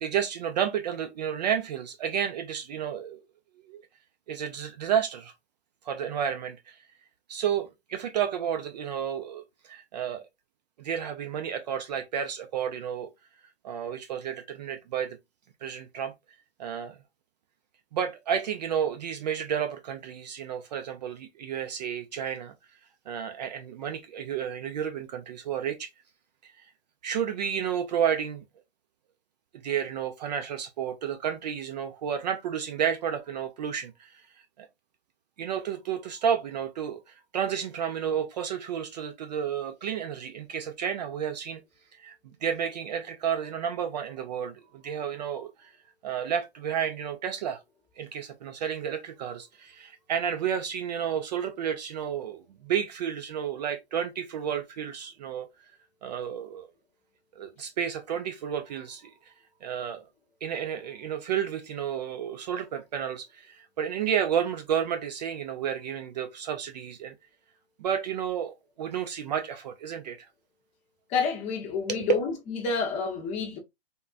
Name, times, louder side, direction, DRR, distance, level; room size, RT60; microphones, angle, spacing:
voice 1, 0.0-3.2 3.6-3.8 4.3-5.3 5.8-6.8 7.3-10.2 10.8-13.1 13.6-15.2 15.6-16.1 16.6-17.0 17.9-22.5 23.1-25.9 26.4-26.7 27.0-28.4 29.6-34.1 34.6-34.7 35.4-41.6 41.9-45.7 46.0-47.6 48.0-55.5 56.0-56.7 57.4-59.3 59.6-60.1 60.4-67.1 67.8-70.2 71.9-72.1, right 8 dB, 40° right, 0.4 m, -31 dB
voice 2, 71.1-72.3 72.6-73.6, left 5 dB, 20° left, 0.7 m, -28 dB
3.6 x 2.1 x 2.4 m
hypercardioid pair, 135°, 32 cm